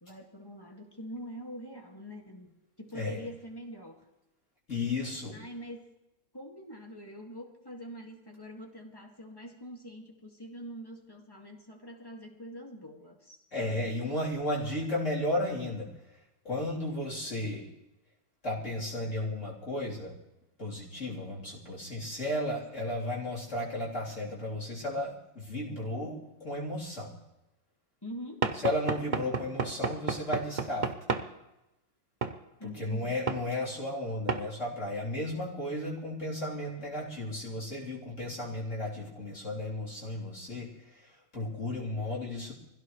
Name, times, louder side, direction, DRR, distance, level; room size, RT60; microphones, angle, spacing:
voice 1, 0.0-4.1 5.3-5.9 6.3-13.4 28.0-28.5 32.6-33.2, equal, 10° left, 1 dB, 2.0 m, -44 dB
voice 2, 4.7-5.4 13.5-15.9 16.4-17.7 18.4-20.1 20.6-27.1 28.6-30.9 32.6-40.7 41.3-42.5, left 1 dB, 35° left, -6 dB, 3.9 m, -34 dB
Knock / Wood, 28.4-31.3 32.2-32.4 33.3-33.5 34.3-34.5, right 5 dB, 55° right, 0.5 m, -31 dB
25.0 x 16.0 x 3.2 m, 0.94 s
omnidirectional pair, 2.1 m